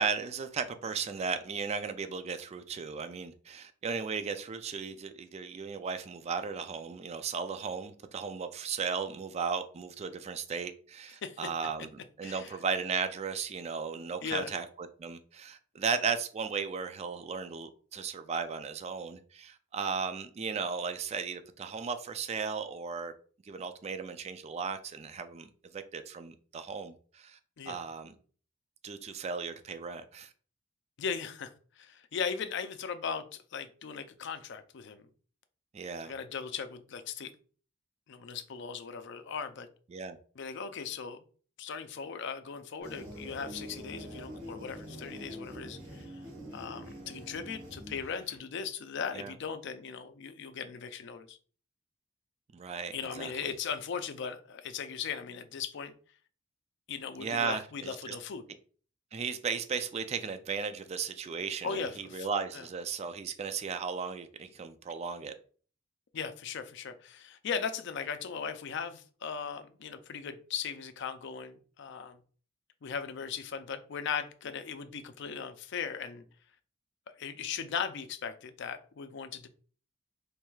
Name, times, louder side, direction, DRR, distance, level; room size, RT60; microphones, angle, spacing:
voice 1, 0.0-11.9 12.2-23.1 23.5-27.4 27.7-28.1 28.8-30.3 35.7-36.1 39.9-40.2 49.1-49.3 52.5-53.3 57.2-58.2 59.1-65.3, right 5 dB, 35° right, 0.3 m, -36 dB
voice 2, 12.2-12.6 14.2-14.5 27.6-27.8 31.0-35.1 36.1-37.3 38.1-39.7 40.4-41.2 41.6-46.2 46.5-51.4 52.9-55.9 56.9-58.4 61.6-62.3 62.5-62.7 66.1-72.2 72.8-76.2 77.2-79.5, left 6 dB, 60° left, 0.5 m, -38 dB
sound 1, 42.8-48.4, equal, 80° right, 1.4 m, -45 dB
4.6 x 3.3 x 2.3 m
head